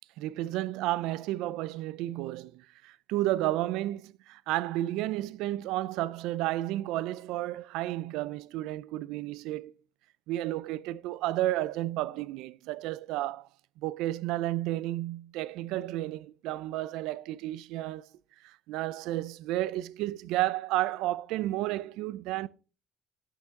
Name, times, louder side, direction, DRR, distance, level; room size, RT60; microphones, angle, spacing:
voice 1, 0.2-9.7 10.3-13.5 13.8-18.1 18.4-22.5, right 15 dB, 90° right, 0.4 m, -32 dB
10.5 x 6.5 x 3.6 m
cardioid pair, 100°, 0 cm